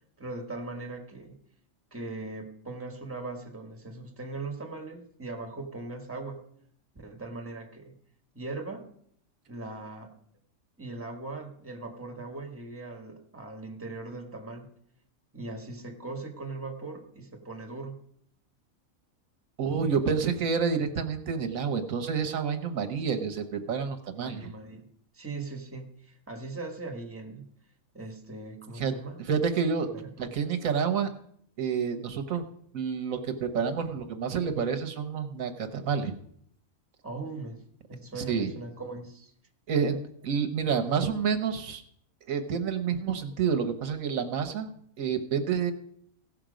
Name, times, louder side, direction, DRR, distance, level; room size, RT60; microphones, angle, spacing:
voice 1, 0.2-1.4 1.9-6.4 6.9-7.9 8.3-8.9 9.5-10.2 10.8-14.7 15.3-18.0 24.2-24.9 25.1-27.4 27.9-29.2 29.9-30.4 37.0-37.6 37.9-39.3, right 3 dB, 10° right, 3 dB, 1.3 m, -39 dB
voice 2, 19.6-24.5 28.8-28.9 29.2-29.9 30.2-31.1 31.6-32.4 32.7-36.1 38.1-38.5 39.7-40.0 40.2-41.8 42.3-44.7 45.0-45.7, right 6 dB, 80° right, 7 dB, 1.4 m, -28 dB
16.5 x 6.0 x 5.1 m, 0.66 s
omnidirectional pair, 1.4 m